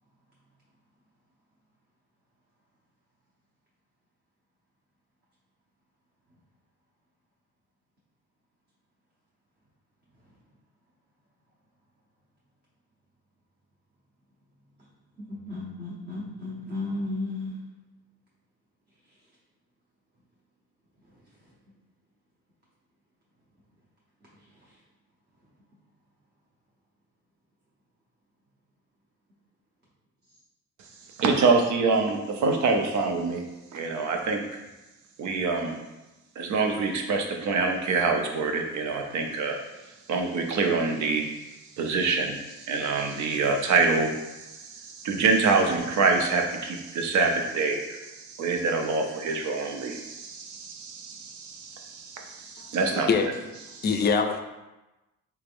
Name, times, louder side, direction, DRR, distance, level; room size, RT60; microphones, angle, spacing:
voice 1, 15.3-17.6, left 2 dB, 35° right, -5 dB, 0.7 m, -33 dB
voice 2, 31.2-33.4 33.7-34.6 35.2-35.7 36.4-39.6 40.1-41.2 41.8-44.1 44.5-53.1 53.7-53.8, right 4 dB, 70° right, 3 dB, 0.6 m, -26 dB
voice 3, 52.6-53.3 53.8-54.4, left 5 dB, 35° left, 5 dB, 0.4 m, -25 dB
3.5 x 3.2 x 2.5 m, 1.0 s
cardioid pair, 90°, 30 cm